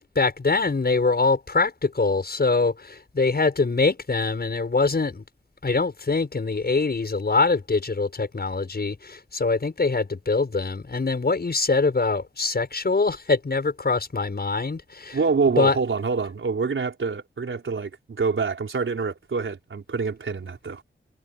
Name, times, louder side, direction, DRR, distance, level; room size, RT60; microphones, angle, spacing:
voice 1, 0.0-5.2 5.6-15.3 15.6-15.8, left 3 dB, 50° left, 7.0 m, -23 dB
voice 2, 15.1-20.8, right 4 dB, 75° right, 5.0 m, -26 dB
wide cardioid pair, 85°, 21 cm